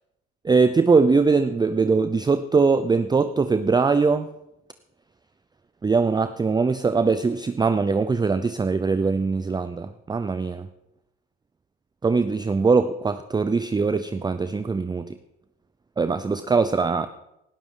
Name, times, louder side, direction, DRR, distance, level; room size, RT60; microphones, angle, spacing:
voice 1, 0.4-4.3 5.8-10.7 12.0-15.2 16.0-17.1, right 4 dB, 15° right, 11 dB, 0.5 m, -21 dB
18.5 x 12.0 x 3.8 m, 0.89 s
supercardioid pair, 80°, 33 cm